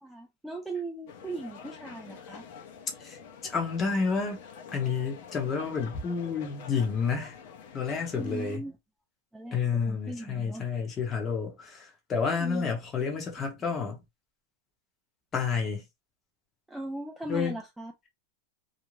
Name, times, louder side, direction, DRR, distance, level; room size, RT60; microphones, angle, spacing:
voice 1, 0.0-2.5 8.2-8.7 9.3-10.6 12.3-12.7 16.7-17.9, right 2 dB, 5° right, 0.3 m, -38 dB
sound 1, 1.1-8.6, left 6 dB, 55° left, 0.7 m, -47 dB
voice 2, 3.4-4.4 4.7-7.3 7.7-8.6 9.5-14.0 15.3-15.8 17.3-17.6, left 5 dB, 20° left, 0.8 m, -30 dB
2.5 x 2.1 x 3.1 m
supercardioid pair, 160°, 0 cm